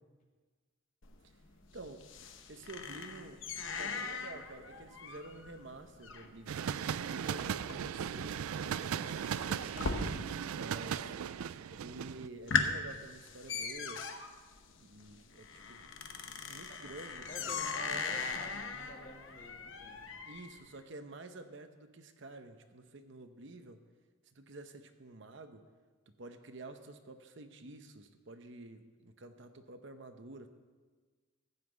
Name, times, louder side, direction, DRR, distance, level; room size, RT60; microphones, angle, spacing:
sound 1, 1.0-10.6 10.8-11.4 11.8-11.9 12.3-20.6, left 5 dB, 65° left, 0.9 m, -39 dB
voice 1, 1.7-3.4 3.8-6.5 7.0-9.7 10.5-11.1 11.7-14.0 14.8-15.9 16.5-17.8 18.0-18.2 20.3-23.8 24.3-25.6 26.2-30.5, right 2 dB, 60° right, 7 dB, 0.8 m, -50 dB
sound 2, 6.5-12.3, right 8 dB, 90° right, 0.4 m, -37 dB
voice 2, 17.3-20.0, equal, 35° left, 0 dB, 2.0 m, -49 dB
15.0 x 5.8 x 8.0 m, 1.4 s
head